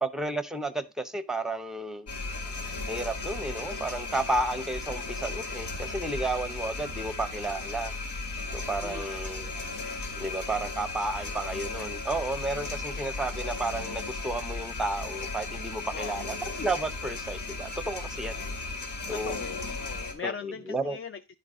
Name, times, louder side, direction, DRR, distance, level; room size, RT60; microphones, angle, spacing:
voice 1, 0.0-2.1 2.9-7.9 8.5-9.5 10.1-18.4 19.1-19.4 20.2-21.0, right 2 dB, ahead, 0.7 m, -32 dB
sound 1, 2.1-20.1, left 3 dB, 90° left, 2.4 m, -36 dB
voice 2, 8.8-9.2 15.9-16.3 19.1-21.3, left 6 dB, 35° left, 0.4 m, -39 dB
10.5 x 4.0 x 4.9 m
wide cardioid pair, 110°, 39 cm